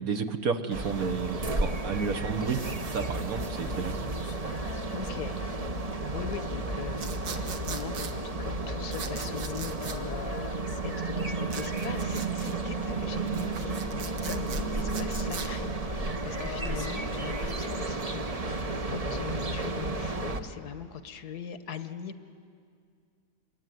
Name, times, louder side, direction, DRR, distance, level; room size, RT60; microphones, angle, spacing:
voice 1, 0.0-2.6 2.8-4.1, right 5 dB, 55° right, 8 dB, 1.5 m, -31 dB
sound 1, 0.7-20.4, right 3 dB, 25° right, 0.9 m, -32 dB
Female singing, 3.4-18.8 20.3-20.4, left 9 dB, 85° left, 1.6 m, -47 dB
voice 2, 4.9-5.4 5.7-8.1 8.4-22.2, left 7 dB, 65° left, 10 dB, 1.5 m, -41 dB
sound 2, 7.0-8.1 8.9-10.0 11.5-12.6 13.2-15.5, right 6 dB, 80° right, 2.0 m, -40 dB
26.0 x 22.5 x 9.3 m, 2.2 s
omnidirectional pair, 1.9 m